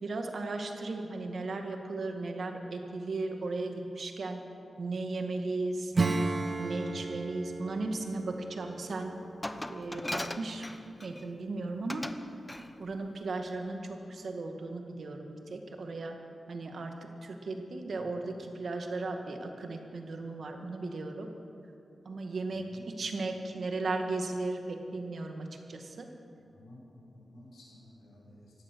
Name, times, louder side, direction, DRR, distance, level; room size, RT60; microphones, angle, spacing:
voice 1, 0.0-4.4 4.8-5.9 6.6-9.1 9.7-10.6 11.0-12.1 12.8-16.2 16.5-16.9 17.2-21.3 22.0-22.7 23.0-26.1, right 3 dB, 70° right, 4 dB, 1.7 m, -36 dB
Acoustic guitar / Strum, 5.9-10.2, right 3 dB, 50° right, 1.2 m, -34 dB
Glass, 9.4-11.3 11.9-12.2 12.5-12.7, left 1 dB, 20° left, 1.0 m, -38 dB
voice 2, 22.5-23.1 26.4-28.5, left 1 dB, 85° left, -5 dB, 4.8 m, -54 dB
16.5 x 12.0 x 6.2 m, 2.6 s
cardioid pair, 45°, 0 cm